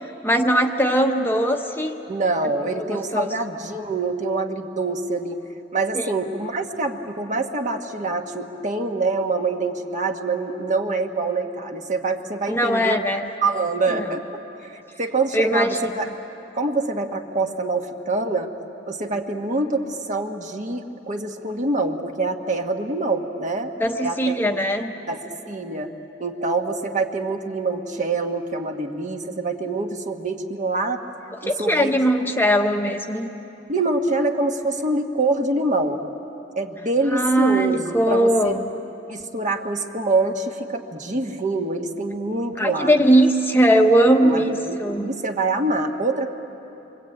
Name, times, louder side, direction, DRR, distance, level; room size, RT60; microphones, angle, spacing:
voice 1, 0.2-2.0 2.9-3.3 5.9-6.0 12.5-13.3 13.9-14.1 15.3-15.9 23.8-24.9 31.4-33.3 37.1-38.5 42.6-45.2, right 1 dB, 10° left, 4 dB, 0.9 m, -20 dB
voice 2, 2.1-5.4 5.7-13.0 13.4-16.1 16.5-18.5 18.9-23.7 24.0-24.4 25.1-25.9 26.2-31.0 31.4-31.9 33.7-36.0 36.5-38.6 39.1-42.9 44.2-46.3, right 3 dB, 40° right, 4 dB, 1.5 m, -25 dB
28.5 x 24.0 x 8.8 m, 2.9 s
head